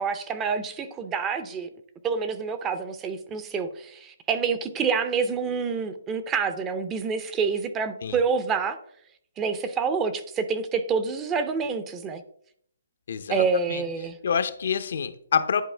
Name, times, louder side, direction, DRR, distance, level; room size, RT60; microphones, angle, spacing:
voice 1, 0.0-1.7 2.0-8.8 9.4-12.2 13.3-14.2, right 5 dB, 15° right, 10 dB, 0.5 m, -27 dB
voice 2, 13.1-13.4 13.7-13.8 14.2-15.6, left 7 dB, 60° left, 11 dB, 0.6 m, -26 dB
10.0 x 4.1 x 3.3 m, 0.65 s
hypercardioid pair, 155°, 0 cm